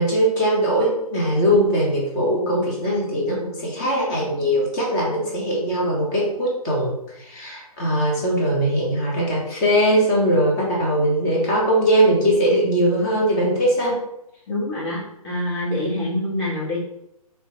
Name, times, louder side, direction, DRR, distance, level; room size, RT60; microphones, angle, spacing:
voice 1, 0.0-6.9 7.3-14.0, right 1 dB, 25° left, -2 dB, 1.3 m, -20 dB
voice 2, 14.5-16.8, left 1 dB, 45° left, -8 dB, 1.5 m, -26 dB
3.5 x 3.4 x 3.2 m, 0.81 s
figure-of-eight pair, 140°, 19 cm